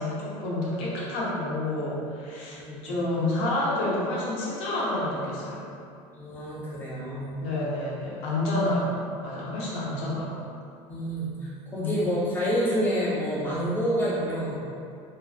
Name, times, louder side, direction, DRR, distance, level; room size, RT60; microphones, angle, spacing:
voice 1, 0.0-5.6 7.4-8.9 9.2-10.3 11.8-11.9, left 2 dB, 60° left, -6 dB, 0.7 m, -29 dB
voice 2, 2.5-2.9 6.1-7.4 10.9-14.6, equal, 15° left, -9 dB, 0.6 m, -28 dB
2.5 x 2.4 x 2.3 m, 2.5 s
cardioid pair, 160°, 11 cm